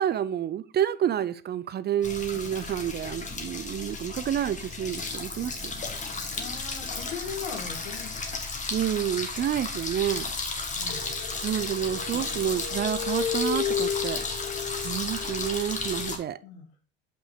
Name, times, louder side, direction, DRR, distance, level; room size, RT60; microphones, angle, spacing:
voice 1, 0.0-5.7 8.7-10.3 11.4-14.2 14.8-16.4, right 10 dB, 35° right, 0.5 m, -29 dB
sound 1, 2.0-16.2, left 3 dB, 25° left, 1.7 m, -34 dB
voice 2, 6.3-8.4 10.7-11.1 12.3-12.6 16.4-16.7, left 6 dB, 85° left, 2.0 m, -40 dB
sound 2, 10.9-16.2, left 7 dB, 45° left, 1.5 m, -34 dB
5.6 x 5.4 x 4.9 m
hypercardioid pair, 80°, 30 cm